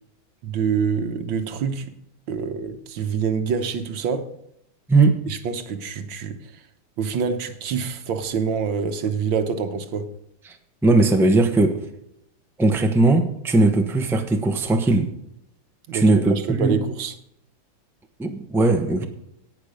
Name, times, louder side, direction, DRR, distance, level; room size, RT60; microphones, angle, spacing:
voice 1, 0.4-1.9 2.3-4.3 5.3-6.5 7.0-10.1 15.9-17.2, right 6 dB, 85° right, 1.8 m, -26 dB
voice 2, 10.8-11.8 12.6-15.1 15.9-16.8 18.2-19.0, right 2 dB, ahead, 0.7 m, -18 dB
17.5 x 6.0 x 5.1 m
omnidirectional pair, 2.1 m